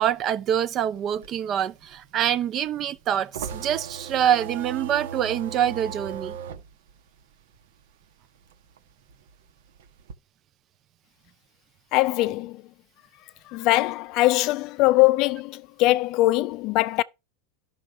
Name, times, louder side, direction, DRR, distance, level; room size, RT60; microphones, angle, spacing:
voice 1, 0.0-6.4, right 10 dB, 30° right, 0.6 m, -25 dB
sound 1, 0.9-8.0 8.4-10.1, right 7 dB, 85° right, 1.3 m, -38 dB
voice 2, 11.9-12.6 13.5-17.0, left 18 dB, 45° left, 0.4 m, -21 dB
12.0 x 6.3 x 4.7 m
supercardioid pair, 150°, 0 cm